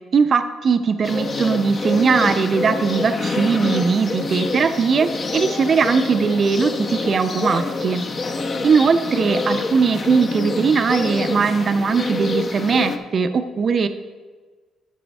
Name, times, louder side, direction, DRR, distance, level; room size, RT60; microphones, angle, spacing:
voice 1, 0.1-8.0 8.6-13.9, right 5 dB, 45° right, 9 dB, 0.5 m, -19 dB
sound 1, 1.0-13.0, left 3 dB, 45° left, 0.8 m, -26 dB
12.0 x 6.1 x 3.4 m, 1.4 s
cardioid pair, 90°, 0 cm